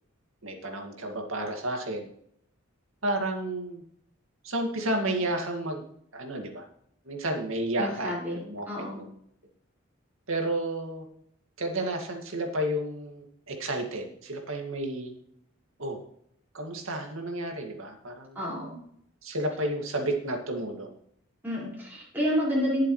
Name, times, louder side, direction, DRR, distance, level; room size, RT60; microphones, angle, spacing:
voice 1, 0.4-2.1 3.0-3.8 4.4-5.8 6.1-6.6 7.0-8.7 9.0-9.1 10.3-11.1 11.6-15.1 15.8-16.0 16.5-18.4 19.2-20.9, right 1 dB, 80° right, 2 dB, 2.3 m, -31 dB
voice 2, 7.8-8.4 8.7-9.0 18.3-18.8 21.4-22.9, equal, 10° right, -7 dB, 5.4 m, -29 dB
20.0 x 7.5 x 3.3 m, 0.69 s
head